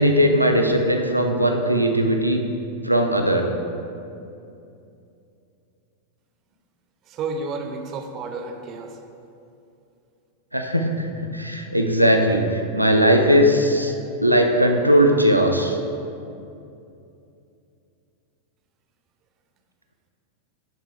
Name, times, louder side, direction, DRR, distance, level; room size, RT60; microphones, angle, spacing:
voice 1, 0.0-2.4 2.8-3.5 10.5-13.9 14.2-15.8, equal, 90° right, 3 dB, 0.5 m, -19 dB
voice 2, 7.1-9.0, right 3 dB, 35° right, 5 dB, 0.6 m, -31 dB
11.0 x 3.7 x 3.2 m, 2.7 s
figure-of-eight pair, 90°, 0 cm